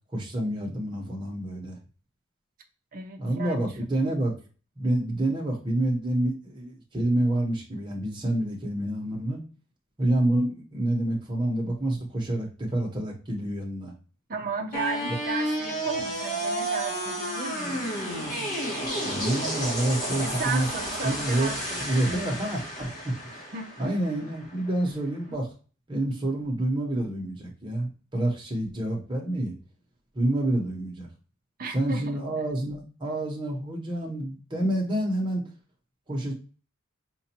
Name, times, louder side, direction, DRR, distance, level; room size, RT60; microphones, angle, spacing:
voice 1, 0.1-1.8 3.2-4.3 4.8-9.4 10.0-13.9 19.0-20.7 21.0-21.5 21.8-23.5 23.8-25.5 25.9-29.5 30.1-31.1 31.7-35.4 36.1-36.3, right 1 dB, 20° right, -1 dB, 1.1 m, -28 dB
voice 2, 2.9-3.6 14.3-17.9 20.1-22.2 23.5-24.0 31.6-32.2 36.2-36.3, right 4 dB, 40° right, 3 dB, 0.6 m, -35 dB
sound 1, 14.7-24.8, right 1 dB, 40° left, 1.5 m, -31 dB
5.1 x 2.6 x 2.8 m, 0.37 s
head